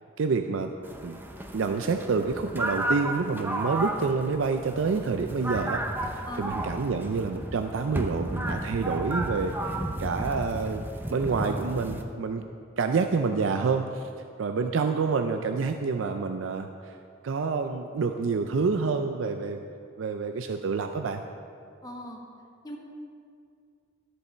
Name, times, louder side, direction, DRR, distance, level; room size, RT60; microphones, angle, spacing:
voice 1, 0.2-0.7 1.0-1.2 1.5-5.9 6.1-12.4 12.8-14.1 14.4-17.0 17.2-19.6 20.0-21.2, right 4 dB, 80° right, 6 dB, 0.4 m, -28 dB
sound 1, 0.8-12.0, right 1 dB, 10° right, 0.6 m, -33 dB
voice 2, 21.8-22.2 22.6-22.8, left 1 dB, 20° left, 0 dB, 1.2 m, -39 dB
13.5 x 6.7 x 4.4 m, 2.3 s
head